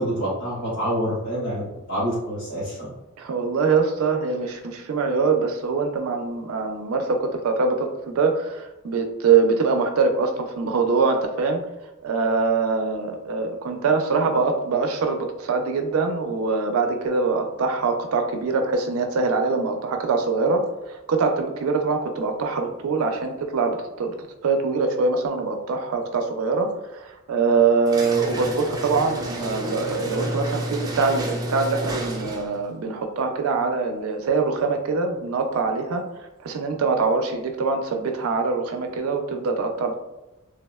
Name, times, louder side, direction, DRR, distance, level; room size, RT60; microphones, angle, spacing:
voice 1, 0.0-1.6 1.9-2.9, equal, 85° left, -13 dB, 1.2 m, -26 dB
voice 2, 3.2-11.6 12.0-24.1 24.4-36.0 36.4-39.9, right 4 dB, 85° right, 5 dB, 0.4 m, -23 dB
sound 1, 27.9-32.6, right 1 dB, 20° right, 0.3 m, -30 dB
3.4 x 2.0 x 2.2 m, 0.98 s
head